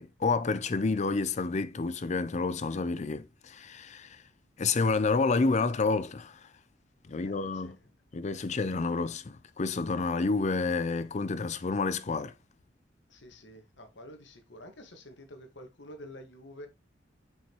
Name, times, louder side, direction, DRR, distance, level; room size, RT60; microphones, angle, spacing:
voice 1, 0.0-4.2 4.6-6.5 7.1-7.8 8.1-12.3, left 4 dB, 40° left, 0.5 m, -29 dB
voice 2, 7.1-7.7 13.1-16.7, left 1 dB, 70° left, 1.5 m, -49 dB
5.7 x 5.6 x 2.9 m
head